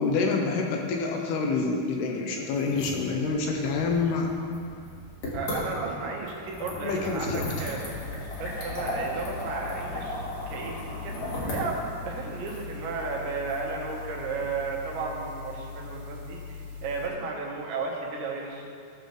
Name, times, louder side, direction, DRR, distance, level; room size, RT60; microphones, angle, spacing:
voice 1, 0.0-4.3 6.8-7.7, left 4 dB, 80° left, 1 dB, 2.6 m, -27 dB
sound 1, 2.6-14.4, left 1 dB, 50° left, 2.5 m, -36 dB
voice 2, 5.3-8.0 8.4-11.2 11.5-18.7, right 4 dB, 85° right, -2 dB, 3.6 m, -34 dB
sound 2, 7.7-17.1, left 5 dB, 50° right, 1.2 m, -41 dB
16.5 x 6.8 x 3.2 m, 2.4 s
omnidirectional pair, 5.0 m